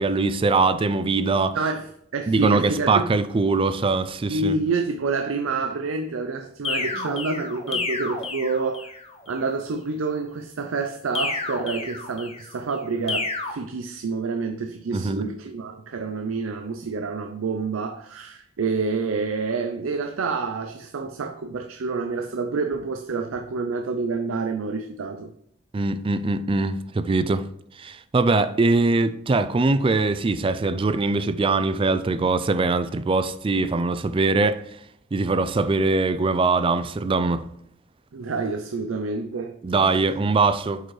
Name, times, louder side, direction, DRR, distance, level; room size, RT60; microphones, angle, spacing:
voice 1, 0.0-1.6 2.3-4.6 7.0-7.1 7.8-7.9 14.9-15.3 25.7-27.4 27.8-34.6 35.1-37.4 39.6-40.8, right 3 dB, 25° right, 0.4 m, -22 dB
voice 2, 1.5-3.1 4.3-8.9 9.3-25.3 38.1-39.9, right 4 dB, 80° right, 0.5 m, -28 dB
sound 1, 6.6-9.1 11.1-12.5 13.1-13.5, left 4 dB, 30° left, 0.9 m, -30 dB
7.7 x 5.2 x 3.2 m
head